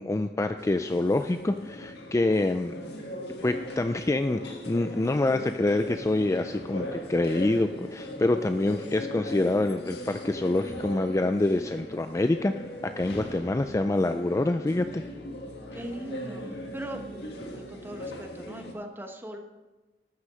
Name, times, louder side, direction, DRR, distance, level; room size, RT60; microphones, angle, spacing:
voice 1, 0.0-2.7 3.4-12.5 12.8-15.0, left 2 dB, 15° left, 8 dB, 0.3 m, -26 dB
sound 1, 0.6-18.7, left 1 dB, 70° left, 1.7 m, -39 dB
voice 2, 15.7-17.0 17.5-19.4, right 1 dB, 15° right, 4 dB, 1.1 m, -39 dB
13.5 x 6.1 x 6.4 m, 1.2 s
head